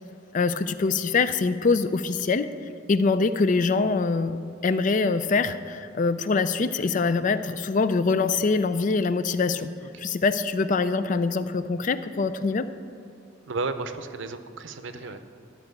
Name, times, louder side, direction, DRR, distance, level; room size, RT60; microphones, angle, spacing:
voice 1, 0.3-2.5 2.9-9.7 10.0-12.7, left 4 dB, 40° left, 12 dB, 0.4 m, -24 dB
voice 2, 6.8-7.1 9.8-9.9 13.4-15.2, right 3 dB, 70° right, 10 dB, 0.6 m, -34 dB
12.5 x 4.8 x 7.9 m, 2.5 s
head